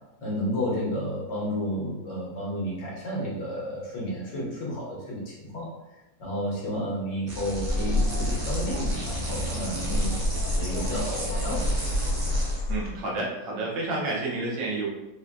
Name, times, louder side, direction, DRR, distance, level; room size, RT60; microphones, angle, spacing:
voice 1, 0.2-5.7 6.2-10.2 10.5-11.7, equal, 75° left, -5 dB, 1.8 m, -31 dB
sound 1, 7.3-12.6, right 1 dB, 55° right, 0.9 m, -36 dB
Bird, 7.4-13.0, left 1 dB, 60° left, 0.8 m, -28 dB
voice 2, 12.7-14.9, right 2 dB, 80° right, -3 dB, 1.6 m, -30 dB
4.3 x 2.6 x 2.2 m, 0.99 s
omnidirectional pair, 1.9 m